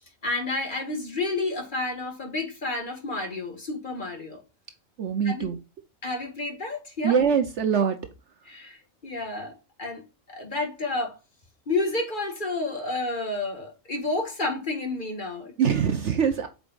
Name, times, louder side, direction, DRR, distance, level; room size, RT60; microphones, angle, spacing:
voice 1, 0.2-4.4 5.2-5.5 6.0-7.2 8.5-8.8 9.0-9.5 9.8-10.0 10.3-11.2 11.7-15.5, left 2 dB, 35° left, 1.8 m, -30 dB
voice 2, 5.0-5.6 7.0-8.0 15.6-16.5, right 7 dB, 60° right, 1.0 m, -23 dB
8.2 x 5.1 x 2.4 m
omnidirectional pair, 1.4 m